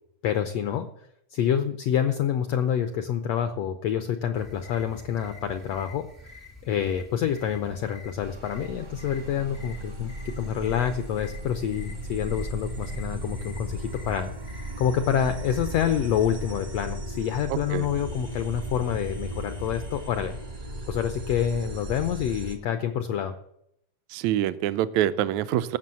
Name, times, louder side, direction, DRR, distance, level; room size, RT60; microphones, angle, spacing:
voice 1, 0.2-0.9 1.3-14.3 14.8-20.4 20.9-23.4, left 9 dB, 80° left, 8 dB, 1.5 m, -27 dB
sound 1, 4.3-14.9, left 2 dB, 15° left, 0.5 m, -47 dB
sound 2, 8.2-22.6, right 1 dB, 40° right, 0.6 m, -36 dB
voice 2, 17.5-17.9 24.1-25.8, right 12 dB, 80° right, 14 dB, 1.7 m, -26 dB
15.0 x 6.2 x 7.4 m, 0.75 s
omnidirectional pair, 3.7 m